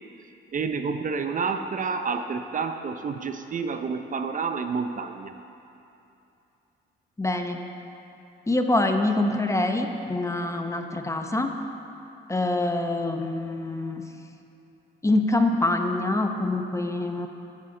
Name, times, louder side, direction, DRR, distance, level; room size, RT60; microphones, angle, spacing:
voice 1, 0.5-5.4, right 5 dB, 40° right, 7 dB, 0.6 m, -29 dB
voice 2, 7.2-7.6 8.5-11.5 12.3-14.0 15.0-17.3, left 2 dB, 15° left, 5 dB, 0.8 m, -25 dB
14.0 x 8.5 x 3.8 m, 2.8 s
cardioid pair, 90°, 20 cm